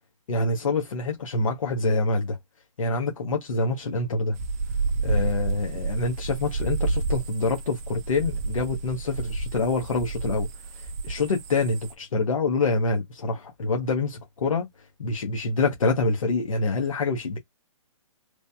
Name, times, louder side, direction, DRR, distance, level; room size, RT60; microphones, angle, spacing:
voice 1, 0.3-2.4 2.8-4.4 5.0-10.5 10.7-14.7 15.0-17.4, left 3 dB, 80° left, 1.0 m, -26 dB
sound 1, 4.3-11.9, right 3 dB, 30° right, 0.5 m, -30 dB
3.1 x 2.1 x 2.6 m
hypercardioid pair, 145°, 17 cm